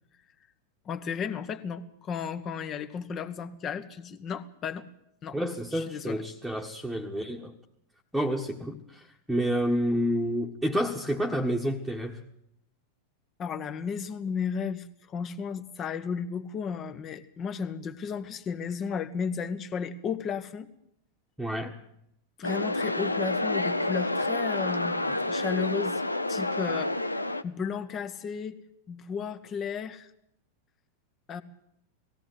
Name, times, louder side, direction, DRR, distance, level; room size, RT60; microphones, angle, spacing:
voice 1, 0.8-4.9 5.2-5.4 5.7-6.2 13.4-20.7 22.4-26.0 26.3-27.0 27.4-28.6 28.9-30.1 31.3-31.4, left 6 dB, 30° left, 12 dB, 1.5 m, -34 dB
voice 2, 5.3-7.5 8.1-12.2 21.4-21.8, equal, ahead, 0 dB, 1.6 m, -29 dB
sound 1, 22.4-27.4, left 2 dB, 85° left, 0.8 m, -29 dB
19.5 x 16.5 x 8.0 m, 0.76 s
figure-of-eight pair, 90°, 0 cm